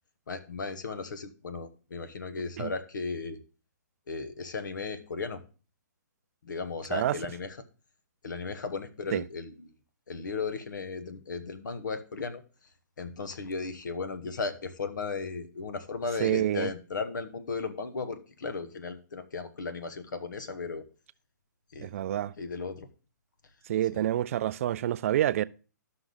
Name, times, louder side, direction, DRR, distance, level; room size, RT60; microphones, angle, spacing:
voice 1, 0.3-3.4 4.1-5.4 6.4-7.6 8.2-9.5 10.1-12.4 13.0-20.8 21.7-21.9 22.4-22.9 23.9-24.0, left 4 dB, 75° left, 1.4 m, -35 dB
voice 2, 16.2-16.7 21.8-22.3 23.7-25.4, right 12 dB, 45° right, 0.4 m, -27 dB
13.0 x 5.9 x 4.0 m
hypercardioid pair, 145°, 10 cm